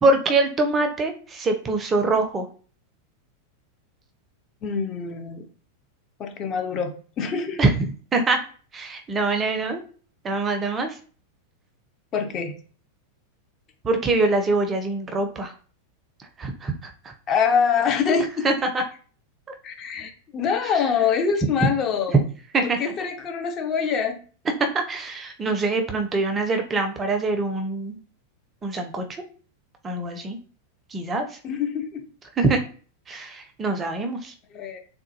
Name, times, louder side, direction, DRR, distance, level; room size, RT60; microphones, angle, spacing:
voice 1, 0.0-2.5 7.6-8.4 8.7-9.8 10.2-11.0 13.8-15.5 16.4-16.9 18.4-18.8 22.5-22.8 24.6-28.0 28.6-29.0 29.8-30.4 30.9-31.4 32.4-32.6 33.1-34.3, right 3 dB, 20° right, 5 dB, 0.5 m, -24 dB
voice 2, 4.6-5.5 6.2-7.6 12.1-12.5 17.3-18.4 19.6-22.3 22.6-24.2 31.4-32.0 34.5-34.8, left 6 dB, 30° left, 5 dB, 0.5 m, -25 dB
3.6 x 2.1 x 2.7 m, 0.41 s
figure-of-eight pair, 90°, 0 cm